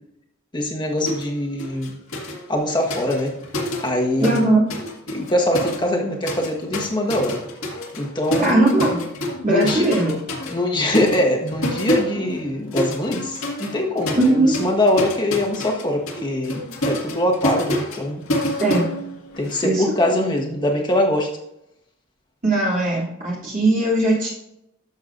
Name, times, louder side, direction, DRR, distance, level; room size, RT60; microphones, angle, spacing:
voice 1, 0.5-2.0 2.5-3.4 3.8-4.4 5.1-7.4 8.0-8.6 9.5-9.9 10.5-18.3 19.4-21.3, left 1 dB, 20° left, 1 dB, 1.4 m, -23 dB
sound 1, 1.1-1.3 1.6-4.4 4.7-19.7, left 1 dB, 80° left, 1.9 m, -28 dB
voice 2, 4.2-4.6 8.4-9.1 9.4-10.2 14.1-14.5 18.6-18.9 19.6-19.8 22.4-24.3, right 2 dB, 40° right, -6 dB, 2.8 m, -19 dB
12.5 x 7.0 x 2.6 m, 0.82 s
head